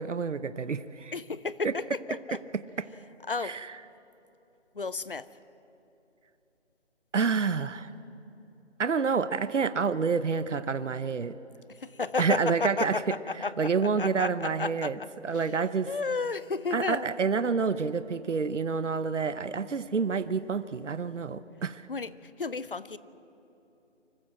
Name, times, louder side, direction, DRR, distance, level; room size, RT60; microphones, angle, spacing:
voice 1, 0.0-1.1 3.4-3.6 7.1-7.9 8.8-11.4 12.2-13.0 13.6-14.9 15.2-15.9 16.7-21.9, right 5 dB, 85° right, 14 dB, 0.9 m, -28 dB
voice 2, 1.1-2.4 3.3-3.7 4.7-5.3 11.7-13.7 14.0-15.6 15.9-17.2 21.9-23.0, left 4 dB, 50° left, 17 dB, 0.7 m, -33 dB
25.0 x 14.5 x 7.7 m, 3.0 s
figure-of-eight pair, 175°, 36 cm